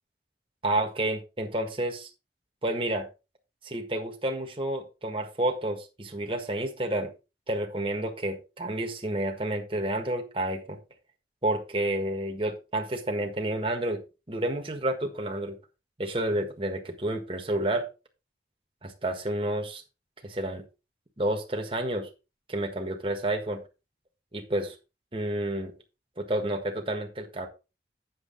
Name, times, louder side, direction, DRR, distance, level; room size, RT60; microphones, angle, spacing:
voice 1, 0.6-2.1 2.6-3.1 3.6-7.1 7.5-10.8 11.4-14.0 14.3-15.6 16.0-17.9 18.8-19.8 20.2-20.6 21.2-22.1 22.5-23.6 24.3-24.7 25.1-25.7 26.2-27.5, right 1 dB, 30° right, 3 dB, 1.5 m, -30 dB
8.6 x 6.9 x 3.9 m, 0.29 s
head